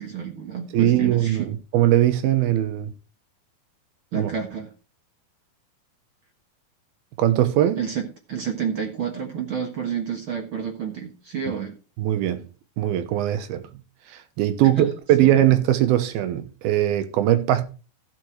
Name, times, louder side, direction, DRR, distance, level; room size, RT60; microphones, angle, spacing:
voice 1, 0.0-1.5 4.1-4.7 7.8-11.7 14.6-14.9 15.2-15.3, right 7 dB, 55° right, 1.4 m, -30 dB
voice 2, 0.7-2.9 4.2-4.3 7.2-7.8 12.0-12.5 12.8-13.7 14.4-17.6, right 12 dB, 80° right, 3.0 m, -20 dB
15.0 x 6.2 x 4.7 m
omnidirectional pair, 4.4 m